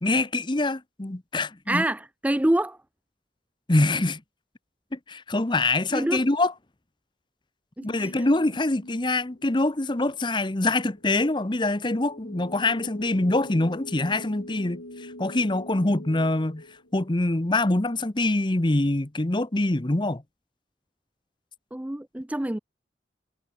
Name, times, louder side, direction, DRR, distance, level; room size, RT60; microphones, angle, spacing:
voice 1, 0.0-1.8 3.7-4.2 4.9-6.5 7.8-16.6 16.9-20.2, left 2 dB, 25° left, 0.9 m, -24 dB
voice 2, 1.7-2.8 5.9-6.2 7.8-8.1 21.7-22.6, right 1 dB, 10° right, 0.4 m, -26 dB
sound 1, 7.8-17.6, left 1 dB, 90° left, 8.0 m, -45 dB
head